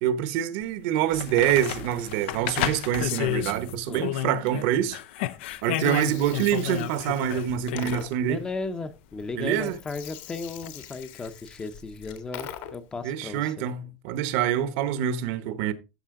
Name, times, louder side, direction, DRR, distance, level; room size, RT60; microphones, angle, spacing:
voice 1, 0.0-5.0 5.6-8.4 9.3-9.8 13.0-15.7, right 10 dB, 60° right, 1.0 m, -26 dB
sound 1, 0.6-0.7 1.1-4.7 4.9-8.1 10.6-10.7, left 14 dB, 80° left, 0.6 m, -31 dB
Gurgling, 5.5-13.0, left 10 dB, 60° left, 1.8 m, -44 dB
voice 2, 8.2-13.5, left 3 dB, 15° left, 0.7 m, -35 dB
13.0 x 5.5 x 3.7 m
cardioid pair, 165°, 6 cm